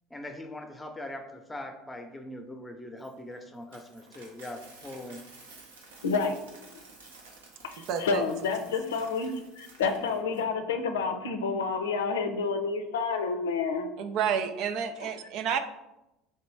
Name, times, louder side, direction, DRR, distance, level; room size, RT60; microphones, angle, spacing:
voice 1, 0.1-5.2, left 1 dB, 10° left, 5 dB, 0.7 m, -41 dB
Coin (dropping), 3.0-10.4, right 3 dB, 85° right, 0.8 m, -52 dB
voice 2, 6.0-6.7 7.6-13.9, left 4 dB, 85° left, 6 dB, 0.5 m, -29 dB
voice 3, 7.8-8.2 14.0-15.6, right 7 dB, 60° right, 8 dB, 0.4 m, -30 dB
3.3 x 2.9 x 4.6 m, 0.91 s
hypercardioid pair, 75°, 0 cm